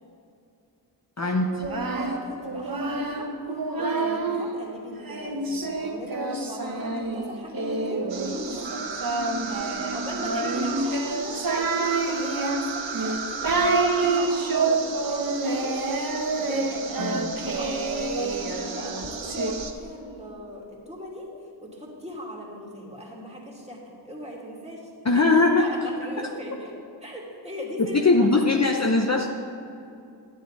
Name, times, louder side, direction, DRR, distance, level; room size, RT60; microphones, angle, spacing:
voice 1, 1.2-1.5 17.0-17.3 25.0-25.7 27.8-29.3, left 3 dB, 35° left, 2 dB, 0.8 m, -20 dB
Singing, 1.5-4.5 5.0-19.5, right 3 dB, 50° right, 1.1 m, -27 dB
voice 2, 1.9-3.3 3.8-8.8 9.9-15.8 16.4-17.7 18.1-21.3 21.6-25.3 25.6-26.7 27.0-28.7, left 1 dB, 15° right, -4 dB, 2.5 m, -39 dB
sound 1, 8.1-19.7, right 5 dB, 80° right, 1.0 m, -35 dB
10.5 x 10.0 x 4.1 m, 2.6 s
wide cardioid pair, 50°, 44 cm